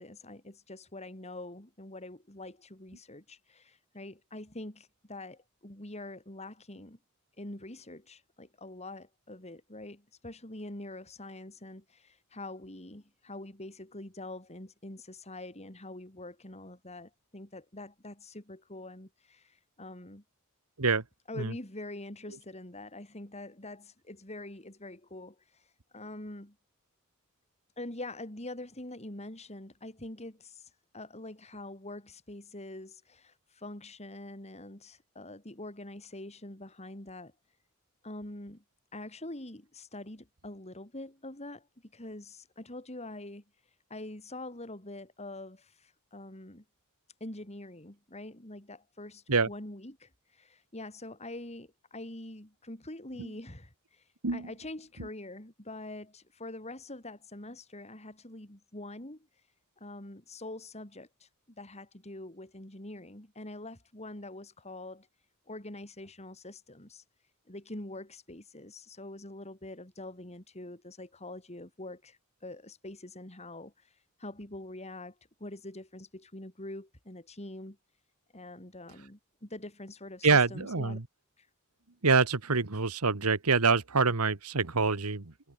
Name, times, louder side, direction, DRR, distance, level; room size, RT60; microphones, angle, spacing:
voice 1, 0.0-7.0 7.4-20.2 21.3-26.5 27.8-37.3 38.0-38.6 38.9-46.6 47.2-59.4 59.8-61.3 61.6-65.1 65.5-67.0 67.5-77.8 78.3-81.0 81.4-81.5, left 2 dB, 30° left, 3.9 m, -45 dB
voice 2, 80.2-81.0 82.0-85.3, right 4 dB, 90° right, 1.6 m, -26 dB
head